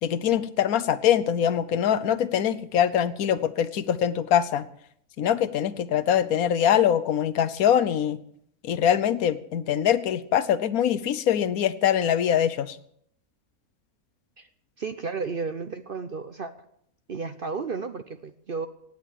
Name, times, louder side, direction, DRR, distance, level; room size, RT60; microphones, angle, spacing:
voice 1, 0.0-4.6 5.2-8.2 8.6-12.8, left 9 dB, 70° left, 15 dB, 1.2 m, -23 dB
voice 2, 14.8-16.5 17.1-18.7, right 4 dB, 50° right, 10 dB, 0.7 m, -33 dB
17.0 x 9.0 x 7.3 m, 0.69 s
omnidirectional pair, 1.6 m